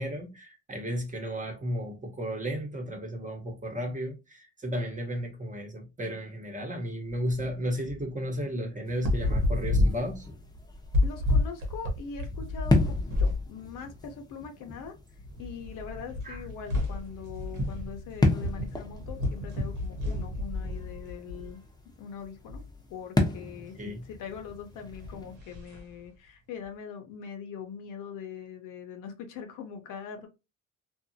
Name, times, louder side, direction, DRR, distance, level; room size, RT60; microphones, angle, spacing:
voice 1, 0.0-10.3 16.2-16.4 23.8-24.0, equal, 25° right, 1.0 m, -34 dB
sound 1, 7.1-7.5 7.9-8.0 8.9-13.5 13.8-14.0 14.8-14.9 15.2-21.5 22.2-22.6 24.8-25.9, left 2 dB, 80° right, 1.2 m, -30 dB
sound 2, 8.8-25.4, left 2 dB, 15° left, 0.7 m, -35 dB
voice 2, 11.0-14.9 15.4-21.6 22.0-22.6 22.9-30.3, left 6 dB, 90° left, 0.7 m, -42 dB
2.6 x 2.4 x 2.6 m
cardioid pair, 90°, 30 cm